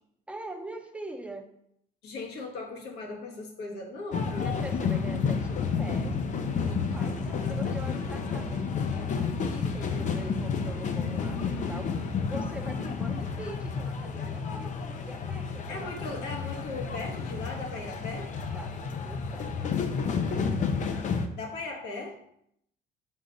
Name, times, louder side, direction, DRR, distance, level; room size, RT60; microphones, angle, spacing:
voice 1, 0.3-1.5 4.4-6.2 6.6-16.1 18.5-18.8 19.0-20.7, right 1 dB, 5° right, 4 dB, 0.7 m, -43 dB
voice 2, 2.0-4.5 15.7-18.3 21.4-22.2, left 3 dB, 80° left, 1 dB, 1.4 m, -38 dB
sound 1, 4.1-21.3, left 5 dB, 45° left, 0.6 m, -31 dB
5.3 x 4.6 x 4.0 m, 0.72 s
cardioid pair, 110°, 17 cm